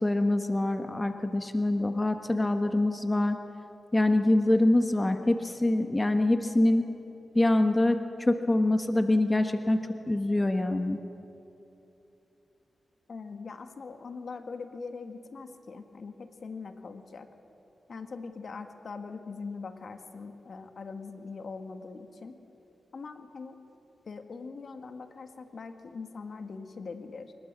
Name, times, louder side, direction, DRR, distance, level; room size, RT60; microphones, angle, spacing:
voice 1, 0.0-3.4 3.9-6.9 7.3-11.0, left 1 dB, 20° left, 7 dB, 1.3 m, -25 dB
voice 2, 13.1-17.3 17.9-22.4 22.9-23.7 24.1-27.3, left 4 dB, 65° left, 7 dB, 1.7 m, -42 dB
24.5 x 21.0 x 7.5 m, 2.9 s
cardioid pair, 65°, 0 cm